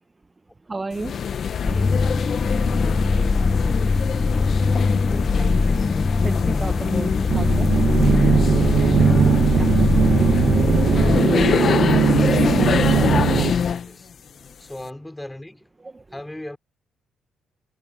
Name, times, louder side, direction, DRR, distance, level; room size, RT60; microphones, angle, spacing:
voice 1, 0.7-1.2 1.6-1.8 2.1-2.3 5.4-5.5 6.2-7.8 9.5-9.7 10.1-10.3 10.9-11.0 12.4-13.6 15.8-16.0, right 3 dB, 20° right, 1.2 m, -33 dB
sound 1, 0.9-13.9, left 7 dB, 55° left, 1.1 m, -24 dB
sound 2, 1.6-11.2, left 3 dB, 25° left, 0.7 m, -21 dB
voice 2, 5.1-5.4 11.3-12.2 13.8-14.1 14.6-15.7 16.1-16.6, left 1 dB, 10° left, 5.0 m, -38 dB
sound 3, 7.3-13.5, right 9 dB, 65° right, 1.4 m, -20 dB
cardioid pair, 90°, 0 cm